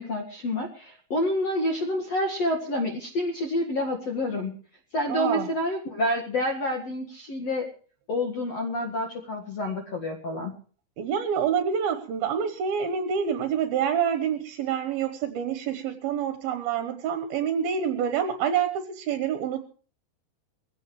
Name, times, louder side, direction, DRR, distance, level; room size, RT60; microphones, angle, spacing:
voice 1, 0.0-4.5 4.9-7.7 8.1-10.5, left 1 dB, 50° left, 2 dB, 2.1 m, -28 dB
voice 2, 5.1-5.5 11.0-19.6, right 8 dB, 65° right, 8 dB, 2.6 m, -27 dB
22.0 x 16.5 x 3.2 m, 0.41 s
omnidirectional pair, 5.4 m